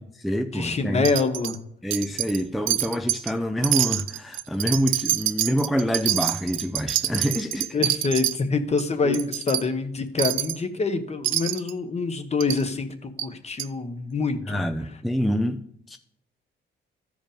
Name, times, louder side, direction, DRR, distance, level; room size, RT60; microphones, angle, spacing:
voice 1, 0.0-1.1 1.8-7.8 9.0-9.2 14.5-16.0, equal, ahead, 0.4 m, -26 dB
voice 2, 0.5-1.6 7.7-14.6, left 4 dB, 35° left, 1.1 m, -26 dB
Wind chime, 1.0-1.6 1.9-2.4 2.7-3.3 3.6-8.4 8.8-8.9 9.1-9.6 10.2-10.6 11.2-11.7 12.4-12.6 13.2-13.3 13.6-13.7, right 14 dB, 80° right, 0.5 m, -26 dB
13.0 x 5.2 x 5.1 m
cardioid pair, 90°, 20 cm